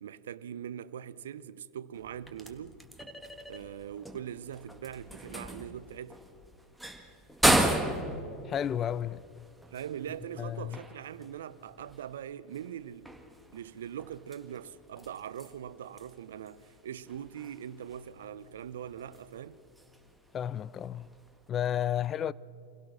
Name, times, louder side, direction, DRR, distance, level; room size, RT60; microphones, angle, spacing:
voice 1, 0.0-2.8 3.5-6.2 9.7-13.1 13.5-19.6, right 9 dB, 75° right, 0.6 m, -42 dB
sound 1, 1.9-21.5, right 1 dB, ahead, 1.7 m, -36 dB
voice 2, 8.4-9.2 10.4-10.8 20.3-21.1 21.5-22.3, left 10 dB, 35° left, 0.4 m, -32 dB
26.0 x 17.0 x 6.1 m
hypercardioid pair, 90°, 0 cm